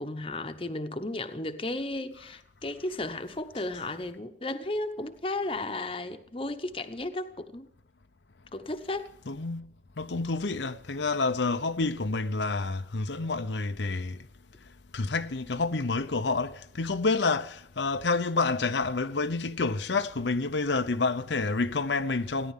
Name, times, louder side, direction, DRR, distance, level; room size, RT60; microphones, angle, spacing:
voice 1, 0.0-7.7 8.5-9.1, left 2 dB, 30° left, 1.0 m, -34 dB
voice 2, 9.3-9.7 10.0-14.2 14.9-22.5, left 3 dB, 90° left, 0.8 m, -28 dB
17.5 x 11.0 x 7.4 m
head